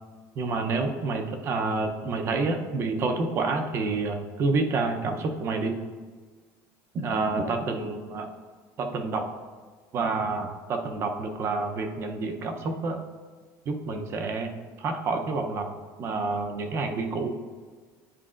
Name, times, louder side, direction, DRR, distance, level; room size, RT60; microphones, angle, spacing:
voice 1, 0.4-5.8 6.9-8.3 8.8-9.3 9.9-13.0 13.7-14.5 14.8-15.7 16.0-17.4, right 3 dB, 35° right, 5 dB, 0.6 m, -28 dB
9.9 x 4.8 x 2.4 m, 1.5 s
cardioid pair, 160°, 7 cm